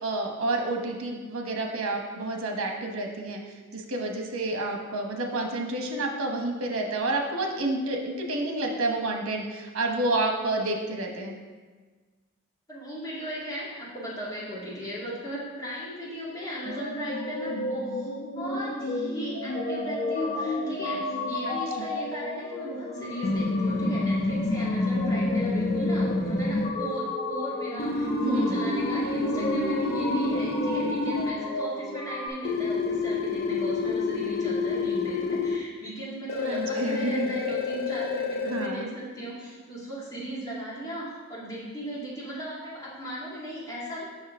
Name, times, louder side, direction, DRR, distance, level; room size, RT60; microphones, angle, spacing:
voice 1, 0.0-3.4 3.7-11.4 21.5-21.9 28.2-28.8 36.4-37.3 38.5-38.9, right 2 dB, 85° right, 2 dB, 1.1 m, -29 dB
voice 2, 12.7-44.0, right 1 dB, 15° left, -8 dB, 2.0 m, -37 dB
sound 1, 16.6-32.3, left 2 dB, 90° left, 1.4 m, -32 dB
sound 2, 23.2-26.7 27.8-31.3 32.4-35.6 36.3-38.7, left 3 dB, 45° left, 0.5 m, -28 dB
7.3 x 6.4 x 3.6 m, 1.4 s
head